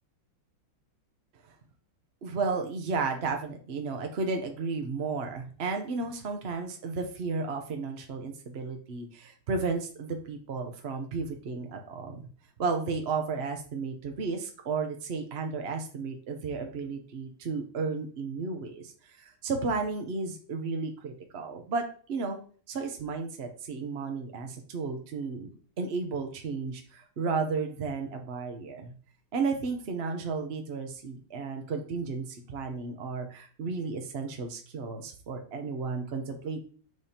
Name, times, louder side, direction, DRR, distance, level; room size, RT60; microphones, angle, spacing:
voice 1, 2.2-12.2 12.6-21.8 22.1-22.4 22.7-25.5 25.8-28.9 29.3-36.6, right 4 dB, 55° right, 4 dB, 0.7 m, -33 dB
6.7 x 6.5 x 2.8 m, 0.43 s
omnidirectional pair, 2.2 m